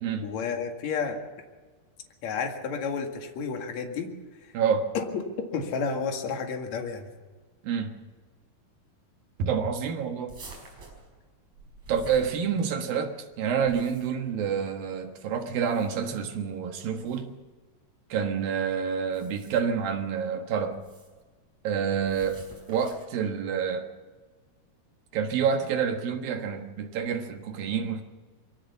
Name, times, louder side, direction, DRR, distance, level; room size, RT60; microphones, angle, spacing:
voice 1, 0.2-1.2 2.2-4.1 4.9-5.2 5.5-7.1, left 5 dB, 50° left, 3.0 m, -31 dB
voice 2, 4.5-4.9 7.6-7.9 9.4-10.3 11.9-17.3 18.1-20.8 21.6-22.4 22.7-23.9 25.1-28.0, right 7 dB, 70° right, 3.1 m, -28 dB
sound 1, 10.3-12.9 13.5-14.3 15.5-16.1 17.0-17.2 19.0-19.8 20.7-21.2 22.0-23.2, right 3 dB, 45° right, 6.2 m, -48 dB
23.0 x 16.5 x 7.1 m
omnidirectional pair, 4.4 m